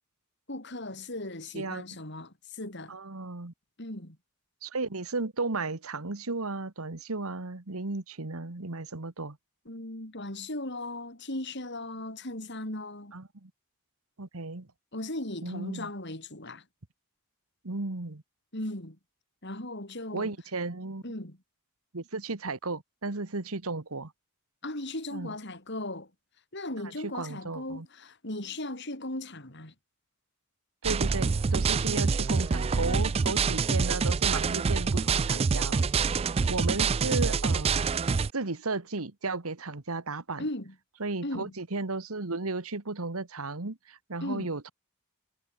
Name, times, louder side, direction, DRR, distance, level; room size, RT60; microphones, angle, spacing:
voice 1, 0.5-3.0 3.8-4.2 9.7-13.1 14.9-16.7 18.5-19.0 19.4-20.3 21.0-21.4 24.6-26.1 26.5-29.7 40.4-40.8 41.2-41.5 44.2-44.5, left 1 dB, 55° left, 5.3 m, -37 dB
voice 2, 2.9-3.5 4.6-9.4 13.1-13.5 14.2-14.7 15.4-15.9 17.6-18.2 20.1-21.0 21.9-24.1 25.1-25.3 27.0-27.9 30.8-35.9 36.5-37.9 38.3-40.4 41.0-44.7, right 3 dB, 90° right, 1.6 m, -34 dB
sound 1, 30.8-38.3, right 5 dB, 30° right, 0.3 m, -26 dB
head